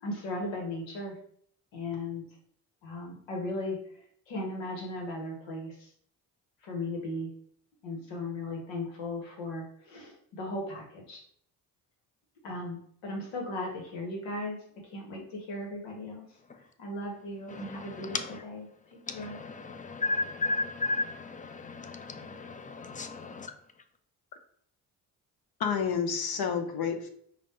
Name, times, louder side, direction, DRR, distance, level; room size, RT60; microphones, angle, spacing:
voice 1, 0.0-1.1 1.7-2.2 2.8-3.8 4.3-5.9 6.6-7.3 7.8-11.2 12.4-14.6 14.9-16.2 16.8-18.2 19.1-19.4, left 1 dB, 75° left, 0 dB, 1.0 m, -37 dB
voice 2, 17.5-18.4 19.1-23.5, left 3 dB, 20° left, 8 dB, 0.5 m, -34 dB
voice 3, 25.6-27.1, left 6 dB, 55° left, 6 dB, 0.8 m, -29 dB
4.9 x 2.1 x 2.8 m, 0.63 s
supercardioid pair, 50°, 45 cm